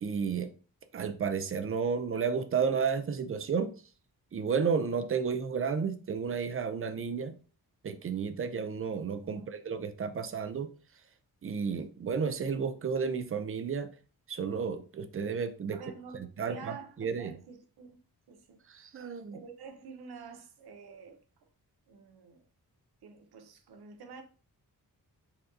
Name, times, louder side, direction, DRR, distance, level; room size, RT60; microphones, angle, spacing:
voice 1, 0.0-0.5 0.9-3.7 4.3-7.4 7.8-10.7 11.4-13.9 14.3-15.8 16.1-17.4 18.7-19.4, right 6 dB, 35° right, 0.5 m, -32 dB
voice 2, 15.7-18.0 18.3-18.9 19.3-21.2 21.9-22.5 23.0-24.2, right 5 dB, 80° right, 0.7 m, -49 dB
4.1 x 2.2 x 2.5 m
cardioid pair, 65°, 38 cm